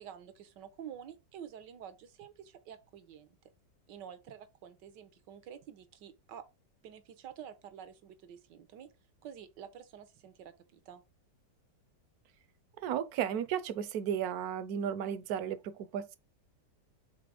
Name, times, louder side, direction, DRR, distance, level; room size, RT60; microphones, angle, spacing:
voice 1, 0.0-3.4 3.9-6.4 6.8-8.9 9.2-11.0, right 9 dB, 85° right, 1.4 m, -49 dB
voice 2, 12.8-16.2, right 9 dB, 70° right, 1.0 m, -34 dB
4.9 x 3.9 x 4.9 m
omnidirectional pair, 1.9 m